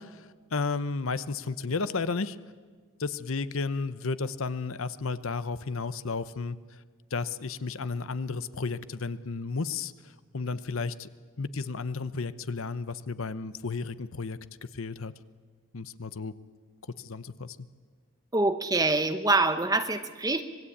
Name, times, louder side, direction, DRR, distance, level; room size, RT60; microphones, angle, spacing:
voice 1, 0.0-2.4 3.0-6.6 7.1-9.9 10.3-11.1 11.4-14.4 14.7-15.1 15.7-16.3 17.0-17.6, left 4 dB, 70° left, 14 dB, 0.8 m, -33 dB
voice 2, 18.3-20.4, right 2 dB, 15° right, 9 dB, 1.0 m, -25 dB
26.0 x 20.0 x 8.7 m, 1.5 s
head